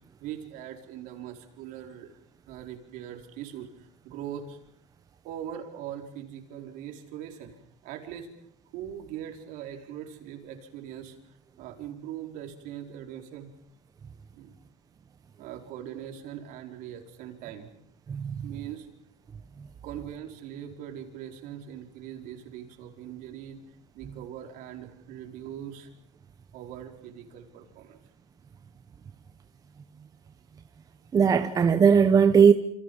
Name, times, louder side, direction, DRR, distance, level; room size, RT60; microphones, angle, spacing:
voice 1, 0.2-2.2 2.5-4.6 5.2-7.6 7.8-8.3 8.7-11.2 11.6-13.5 14.3-14.6 15.4-17.7 18.4-18.9 19.8-23.6 23.9-25.9 26.5-28.0, right 10 dB, 60° right, 4.7 m, -41 dB
voice 2, 31.1-32.5, right 6 dB, 25° right, 1.1 m, -18 dB
28.0 x 28.0 x 5.6 m
cardioid pair, 140°, 16 cm